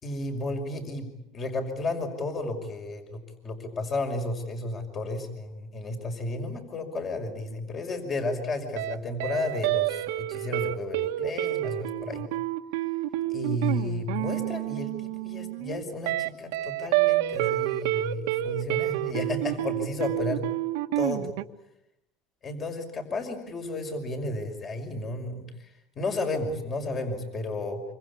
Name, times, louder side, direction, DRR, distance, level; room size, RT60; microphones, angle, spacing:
voice 1, 0.0-1.1 1.3-12.3 13.3-20.5 21.0-21.3 22.4-27.8, left 2 dB, 30° left, 6 dB, 5.7 m, -33 dB
sound 1, 8.8-8.9 9.2-21.4, right 15 dB, 85° right, 1.6 m, -28 dB
26.5 x 26.0 x 8.6 m, 0.83 s
supercardioid pair, 125°, 0 cm